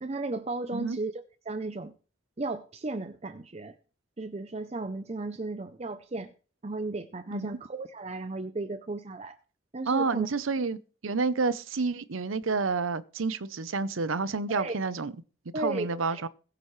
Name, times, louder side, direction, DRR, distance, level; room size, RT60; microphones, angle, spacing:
voice 1, 0.0-1.9 2.4-3.7 4.2-6.3 6.6-9.4 9.7-10.3 14.6-14.8 15.5-16.2, right 2 dB, 30° right, 0.6 m, -35 dB
voice 2, 9.9-15.1 15.6-16.3, right 4 dB, 85° right, 0.7 m, -29 dB
21.5 x 7.7 x 3.2 m
head